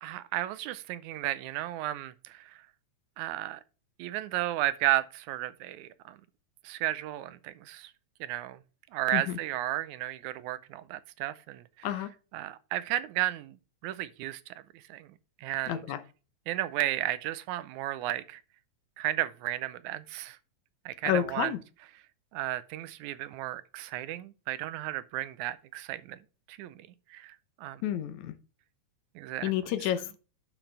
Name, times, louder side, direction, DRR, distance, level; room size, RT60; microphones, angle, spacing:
voice 1, 0.0-2.5 3.2-3.6 4.0-6.2 6.6-7.9 8.2-8.6 8.9-11.9 12.3-13.6 13.8-14.4 14.9-15.1 15.4-15.8 16.5-18.4 19.0-20.4 20.9-21.5 22.3-26.2 26.5-27.8 29.2-29.5 29.8-29.9, right 15 dB, 85° right, 2.0 m, -33 dB
voice 2, 15.7-16.0 21.1-21.6 27.8-28.3 29.4-30.2, left 11 dB, 75° left, 2.1 m, -30 dB
10.0 x 6.0 x 3.3 m
omnidirectional pair, 3.4 m